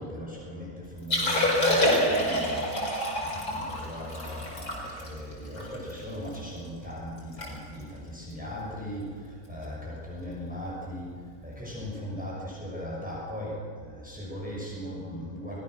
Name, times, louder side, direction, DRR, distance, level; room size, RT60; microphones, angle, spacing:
voice 1, 0.0-11.2 11.4-15.6, equal, 5° right, -5 dB, 6.1 m, -38 dB
Liquid, 1.0-6.4 6.8-6.9 7.2-7.5 7.7-8.0 8.6-8.8 10.3-10.4, left 1 dB, 80° left, 5.5 m, -27 dB
24.0 x 18.0 x 6.3 m, 2.1 s
omnidirectional pair, 1.5 m